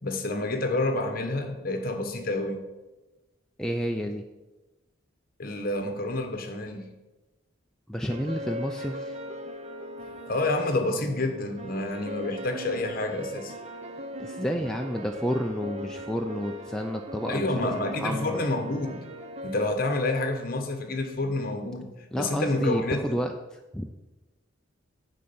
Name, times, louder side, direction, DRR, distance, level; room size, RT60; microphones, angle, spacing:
voice 1, 0.0-2.6 5.4-6.9 10.3-13.5 17.3-19.0 19.4-21.9 22.2-23.2, left 2 dB, 45° left, 5 dB, 1.1 m, -28 dB
voice 2, 3.6-4.2 7.9-9.2 14.2-17.7 18.0-18.4 22.1-23.9, equal, 5° left, 3 dB, 0.3 m, -30 dB
sound 1, 8.1-19.7, equal, 30° right, 0.7 m, -39 dB
9.5 x 3.8 x 7.0 m, 1.1 s
head